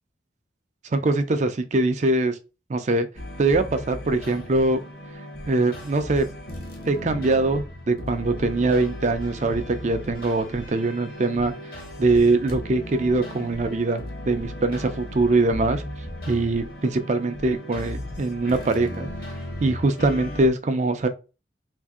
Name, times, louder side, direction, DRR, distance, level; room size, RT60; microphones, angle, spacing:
voice 1, 0.9-2.4 2.7-3.1 3.4-4.8 5.5-6.3 6.9-11.5 12.0-15.8 16.3-19.1 19.6-21.1, right 2 dB, 40° right, 0.4 m, -22 dB
sound 1, 3.1-20.5, left 1 dB, 50° left, 0.8 m, -36 dB
2.7 x 2.6 x 3.5 m
head